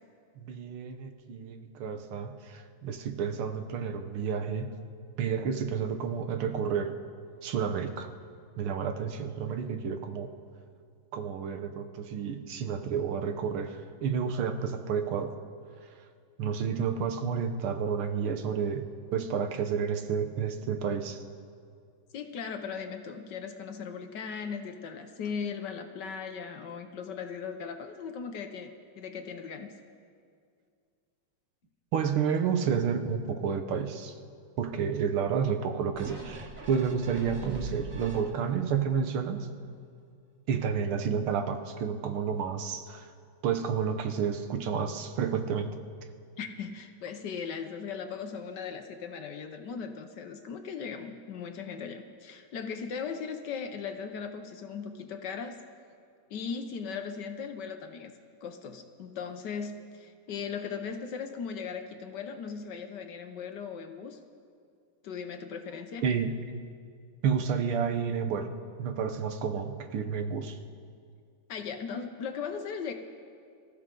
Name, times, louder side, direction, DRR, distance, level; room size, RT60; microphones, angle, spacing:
voice 1, 0.4-4.7 5.2-6.9 7.4-8.1 8.6-10.3 11.1-15.3 16.4-21.2 31.9-34.1 34.6-39.5 40.5-43.0 43.4-45.7 66.0-66.3 67.2-68.5 68.8-70.6, right 7 dB, 85° right, 7 dB, 1.8 m, -30 dB
voice 2, 22.1-29.7 46.4-55.6 56.3-58.1 58.4-64.2 65.0-66.1 71.5-72.9, left 6 dB, 65° left, 7 dB, 1.3 m, -38 dB
sound 1, 35.9-38.6 39.1-39.2, right 2 dB, 40° right, 2.7 m, -41 dB
24.5 x 14.5 x 3.8 m, 2.3 s
omnidirectional pair, 2.3 m